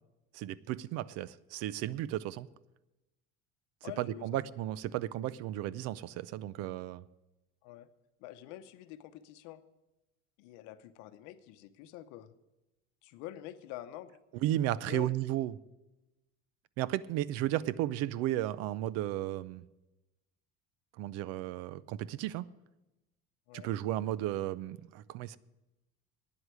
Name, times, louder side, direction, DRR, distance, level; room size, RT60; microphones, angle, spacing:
voice 1, 0.3-2.5 4.0-7.0 14.4-15.6 16.8-19.7 21.0-22.5 23.5-25.4, right 13 dB, 60° right, 0.5 m, -34 dB
voice 2, 3.8-4.4 7.6-7.9 8.2-9.6 10.4-12.4 13.0-14.2 14.9-15.2 23.5-23.7, left 13 dB, 75° left, 0.9 m, -46 dB
9.6 x 8.0 x 9.6 m
cardioid pair, 165°, 29 cm